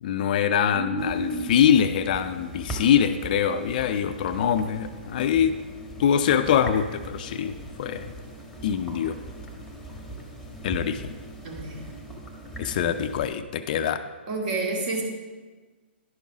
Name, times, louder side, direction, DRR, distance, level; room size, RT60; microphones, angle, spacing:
voice 1, 0.0-5.5 6.0-7.5 7.8-8.1 8.6-9.2 10.6-11.1 12.6-14.0, left 8 dB, 45° left, 10 dB, 0.5 m, -23 dB
voice 2, 0.7-1.6 11.4-12.0 14.3-15.0, right 2 dB, 45° right, 0 dB, 2.3 m, -30 dB
sound 1, 1.0-13.3, right 1 dB, ahead, 1.3 m, -40 dB
11.0 x 5.4 x 4.8 m, 1.3 s
hypercardioid pair, 145°, 6 cm